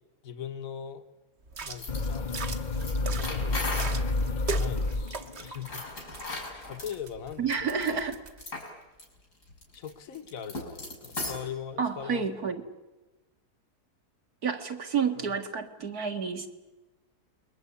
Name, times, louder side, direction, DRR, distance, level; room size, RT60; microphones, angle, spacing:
voice 1, 0.2-1.0 1.6-2.3 3.2-3.8 4.5-5.8 6.7-8.0 9.7-12.2 15.2-15.3, left 8 dB, 60° left, 9 dB, 1.7 m, -41 dB
sound 1, 1.5-8.4, right 4 dB, 45° right, 1.5 m, -41 dB
sound 2, 1.6-4.1 5.6-6.9 7.8-7.9 8.4-8.7 9.0-9.1 9.4-11.5, left 2 dB, 90° left, 6.2 m, -37 dB
sound 3, 1.9-5.6, left 2 dB, 35° left, 0.9 m, -30 dB
voice 2, 7.4-8.2 11.8-12.6 14.4-16.5, right 6 dB, 70° right, 4 dB, 2.5 m, -30 dB
29.0 x 21.5 x 8.4 m, 1.1 s
omnidirectional pair, 1.7 m